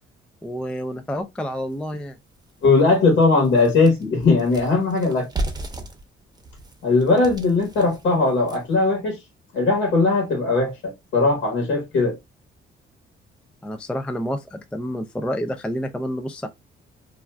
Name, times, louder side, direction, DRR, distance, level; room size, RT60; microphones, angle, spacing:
voice 1, 0.4-2.2 13.6-16.5, equal, 5° left, 0.3 m, -29 dB
sound 1, 1.7-1.8 2.3-2.4 2.8-8.8, right 2 dB, 20° right, 0.8 m, -35 dB
voice 2, 2.6-5.3 6.8-9.2 9.5-12.2, left 3 dB, 70° left, 1.1 m, -19 dB
2.5 x 2.3 x 3.0 m
cardioid pair, 90°, 20 cm